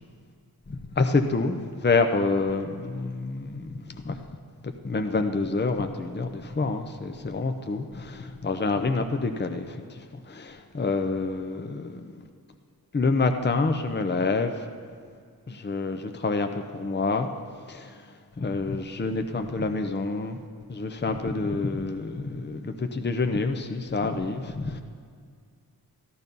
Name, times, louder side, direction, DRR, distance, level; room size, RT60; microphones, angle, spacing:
voice 1, 0.7-4.2 4.8-12.1 12.9-14.7 15.5-17.3 17.7-18.1 18.4-20.4 20.7-24.8, left 3 dB, 30° left, 6 dB, 0.7 m, -27 dB
14.0 x 11.5 x 5.4 m, 2.1 s
wide cardioid pair, 75°, 38 cm